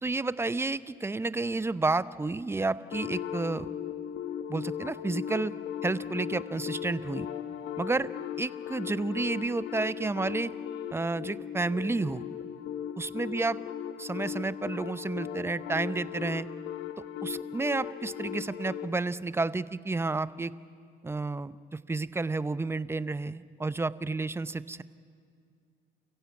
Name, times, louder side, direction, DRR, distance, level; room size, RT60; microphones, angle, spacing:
voice 1, 0.0-3.7 4.5-5.5 5.8-7.3 7.8-8.1 8.4-10.5 10.9-12.2 13.0-13.6 14.0-16.5 17.2-20.5 21.0-24.8, right 3 dB, 15° right, 16 dB, 0.7 m, -31 dB
sound 1, 2.9-18.9, left 9 dB, 75° left, 1.1 m, -38 dB
29.0 x 15.0 x 8.5 m, 2.3 s
supercardioid pair, 90°, 19 cm